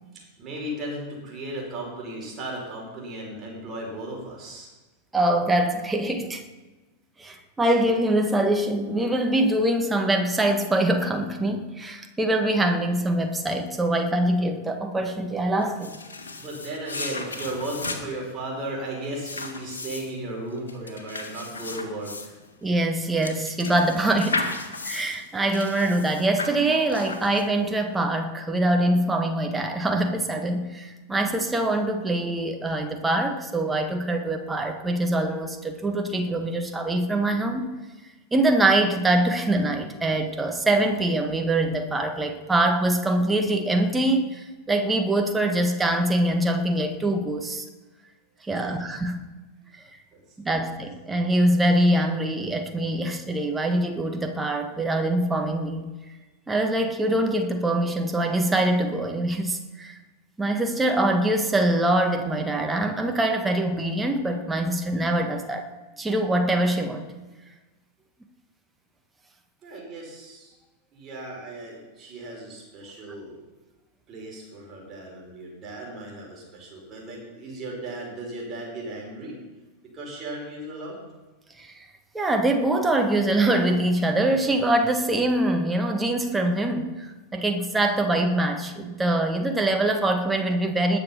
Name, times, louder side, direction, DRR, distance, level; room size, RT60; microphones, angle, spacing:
voice 1, 0.4-4.7 16.4-22.4 48.6-48.7 50.1-50.2 69.6-70.5 70.9-73.4 74.1-79.4 79.9-81.0, right 1 dB, 30° right, -2 dB, 5.5 m, -36 dB
voice 2, 5.1-6.4 7.2-16.0 22.6-24.5 24.8-37.8 38.3-47.6 48.5-49.2 50.4-55.9 56.5-60.0 60.4-65.6 66.0-67.1 81.6-81.7 82.1-87.0 87.3-91.0, right 1 dB, 10° right, 4 dB, 1.5 m, -24 dB
sound 1, 15.6-27.7, left 3 dB, 70° left, 1.5 m, -35 dB
20.0 x 7.1 x 5.8 m, 1.2 s
figure-of-eight pair, 90°, 0 cm